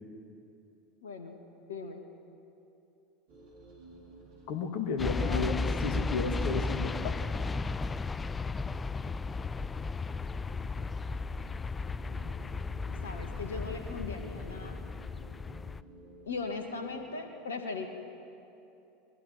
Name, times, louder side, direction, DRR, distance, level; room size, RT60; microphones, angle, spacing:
voice 1, 1.0-1.4 1.7-2.0 5.1-5.5 13.0-14.8 16.3-17.9, left 4 dB, 70° left, 5 dB, 2.3 m, -39 dB
sound 1, 3.3-17.1, right 2 dB, 60° right, 5.9 m, -54 dB
voice 2, 4.5-7.2, left 5 dB, 50° left, 6 dB, 2.2 m, -33 dB
sound 2, 5.0-15.8, left 3 dB, 20° left, 0.5 m, -34 dB
29.5 x 22.0 x 6.1 m, 2.8 s
figure-of-eight pair, 75°, 0 cm